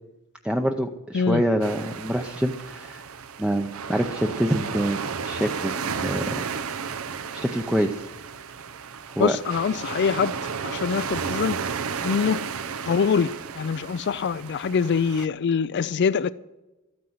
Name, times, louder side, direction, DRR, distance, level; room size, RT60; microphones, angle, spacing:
voice 1, 0.4-3.0 3.4-6.4 7.3-8.1 9.2-9.4, right 1 dB, 5° right, 4 dB, 0.6 m, -26 dB
sound 1, 1.6-15.3, right 6 dB, 70° right, 0.7 m, -33 dB
voice 2, 9.2-10.3 10.6-11.6 12.0-12.4 12.9-16.3, left 6 dB, 50° left, 15 dB, 0.4 m, -24 dB
13.5 x 9.5 x 7.9 m, 1.1 s
head